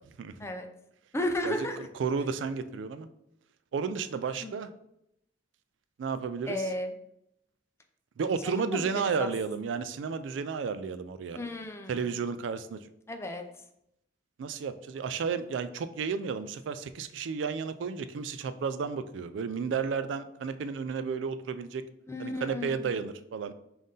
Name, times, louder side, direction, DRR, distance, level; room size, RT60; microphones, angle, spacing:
voice 1, 1.1-1.8 4.4-4.5 6.5-6.9 8.4-8.9 9.2-9.3 11.3-12.1 13.1-13.5 22.1-23.0, left 1 dB, 15° left, 5 dB, 0.4 m, -34 dB
voice 2, 2.0-3.1 3.7-4.7 6.0-6.6 8.2-11.4 11.9-12.8 14.4-21.8 22.2-23.5, right 5 dB, 80° right, 12 dB, 0.3 m, -32 dB
5.4 x 2.6 x 3.8 m, 0.78 s
head